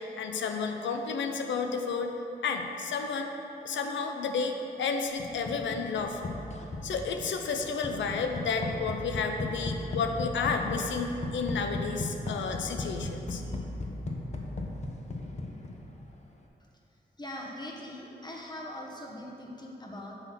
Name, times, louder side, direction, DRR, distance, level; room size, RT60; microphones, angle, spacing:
voice 1, 0.0-2.1 2.4-3.3 3.6-6.2 6.8-13.4, left 5 dB, 90° left, 5 dB, 0.6 m, -31 dB
sound 1, 5.2-16.1, left 2 dB, 40° left, 0.8 m, -37 dB
voice 2, 17.2-20.1, left 1 dB, 25° left, -1 dB, 1.3 m, -41 dB
7.9 x 3.9 x 5.8 m, 2.9 s
cardioid pair, 65°, 19 cm